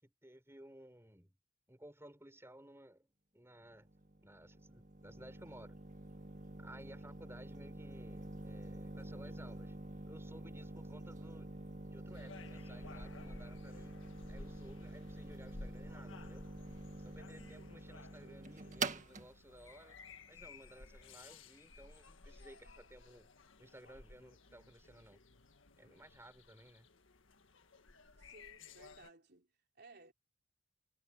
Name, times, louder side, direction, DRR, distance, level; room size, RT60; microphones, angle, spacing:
voice 1, 0.0-1.3 1.7-3.9 4.2-5.8 6.6-9.7 10.1-11.5 11.9-14.0 14.3-16.4 17.0-20.0 20.3-23.3 23.6-25.2 25.8-26.9, right 1 dB, 15° right, 5.9 m, -57 dB
sound 1, 3.7-21.3, right 2 dB, 40° right, 1.8 m, -47 dB
sound 2, 12.1-29.1, left 3 dB, 80° left, 1.7 m, -56 dB
voice 2, 28.1-30.1, right 3 dB, 55° right, 3.7 m, -60 dB
head